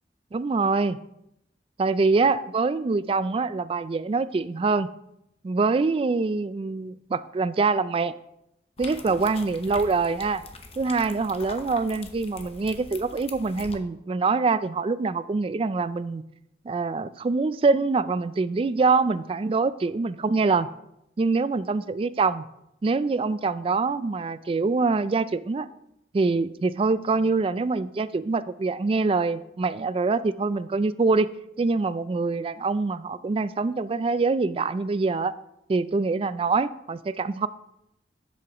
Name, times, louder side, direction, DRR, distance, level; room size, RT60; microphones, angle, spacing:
voice 1, 0.3-1.0 1.8-4.9 5.4-8.1 8.8-10.4 10.8-16.2 16.7-20.7 21.2-22.4 22.8-25.7 26.1-31.3 31.6-35.3 35.7-37.5, right 4 dB, 30° right, 15 dB, 0.3 m, -24 dB
sound 1, 8.8-13.8, left 3 dB, 35° left, 0.8 m, -42 dB
10.5 x 7.9 x 2.9 m, 0.82 s
head